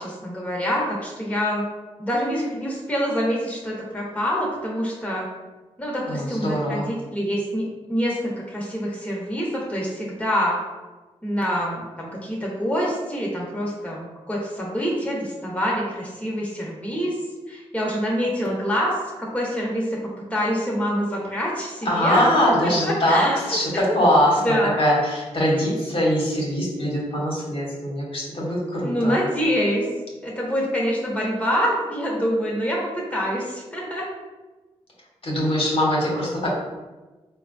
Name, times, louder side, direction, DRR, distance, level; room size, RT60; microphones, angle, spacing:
voice 1, 0.0-1.6 2.0-5.3 5.8-7.6 7.9-10.6 11.2-17.1 17.5-20.0 20.3-22.2 22.6-23.6 23.9-24.0 24.4-24.8 28.8-29.8 30.2-34.1, equal, 10° left, -4 dB, 1.1 m, -26 dB
voice 2, 6.1-6.8 21.8-29.2 35.2-36.5, equal, 50° left, -5 dB, 1.2 m, -22 dB
3.9 x 2.3 x 2.6 m, 1.2 s
supercardioid pair, 40°, 12 cm